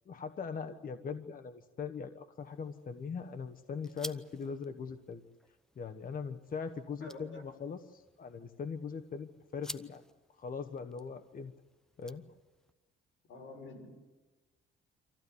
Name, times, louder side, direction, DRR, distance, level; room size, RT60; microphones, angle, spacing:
voice 1, 0.1-5.2 5.8-10.0 10.4-11.5 12.0-12.2, left 5 dB, 45° left, 8 dB, 1.3 m, -41 dB
sound 1, 2.4-12.7, equal, 5° left, 0.9 m, -53 dB
voice 2, 7.0-7.4 13.3-13.9, left 2 dB, 75° left, 4 dB, 6.6 m, -47 dB
26.0 x 15.0 x 9.8 m, 1.2 s
cardioid pair, 90°, 20 cm